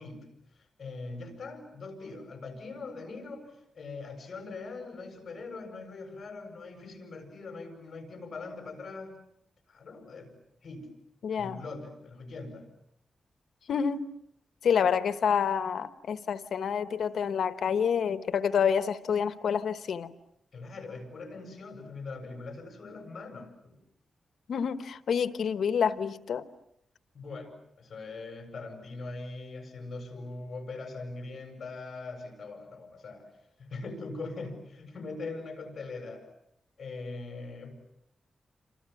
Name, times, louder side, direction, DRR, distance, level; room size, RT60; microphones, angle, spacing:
voice 1, 0.0-9.2 9.7-10.3 10.6-10.9 11.4-12.7 20.5-23.8 27.1-33.3 33.6-36.3 36.8-37.7, left 3 dB, 50° left, 5 dB, 7.5 m, -41 dB
voice 2, 11.2-11.6 13.7-14.0 14.6-20.1 24.5-26.4, left 7 dB, 80° left, 12 dB, 1.1 m, -28 dB
29.5 x 26.5 x 7.2 m, 0.75 s
wide cardioid pair, 125°, 0 cm